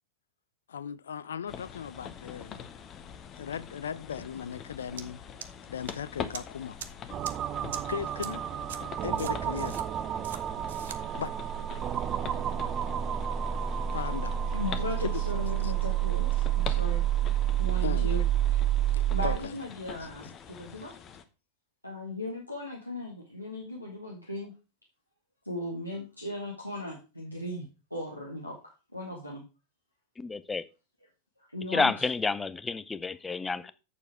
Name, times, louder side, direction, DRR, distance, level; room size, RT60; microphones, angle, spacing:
voice 1, 0.7-2.7 3.4-5.2 5.7-6.8 7.9-8.4 9.0-9.8 11.2-11.3 13.9-14.4 15.0-15.2 15.6-15.7 17.8-18.2 18.9-19.6, left 8 dB, 65° left, 0.5 m, -37 dB
sound 1, 1.5-21.2, left 8 dB, 30° left, 1.0 m, -44 dB
sound 2, 5.0-5.1 5.4-5.9 6.3-6.4 6.8-6.9 7.2-7.3 7.7-7.8 8.2-8.3 8.7-8.8 9.2-9.8 10.2-10.4 10.7-11.0, right 9 dB, 60° right, 0.9 m, -40 dB
sound 3, 7.1-19.4, right 11 dB, 30° right, 0.5 m, -29 dB
voice 2, 14.5-17.1 17.6-18.2 18.5-18.6 19.0-20.9 21.8-24.5 25.4-28.6 28.9-29.4 31.5-32.1 33.6-33.7, left 1 dB, 90° left, 1.9 m, -37 dB
voice 3, 30.2-30.6 31.7-33.7, left 4 dB, 10° left, 0.6 m, -29 dB
8.5 x 6.9 x 4.6 m
figure-of-eight pair, 90°, 0 cm